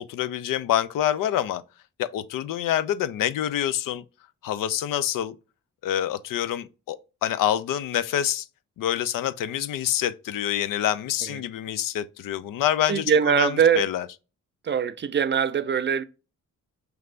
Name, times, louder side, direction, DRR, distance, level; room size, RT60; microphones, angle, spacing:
voice 1, 0.0-1.6 2.0-4.0 4.4-5.3 5.8-8.5 8.8-13.5 13.8-14.0, left 11 dB, 80° left, 0.5 m, -26 dB
voice 2, 12.9-13.9 14.6-16.0, right 7 dB, 35° right, 0.5 m, -22 dB
4.5 x 3.2 x 2.4 m
cardioid pair, 65°, 32 cm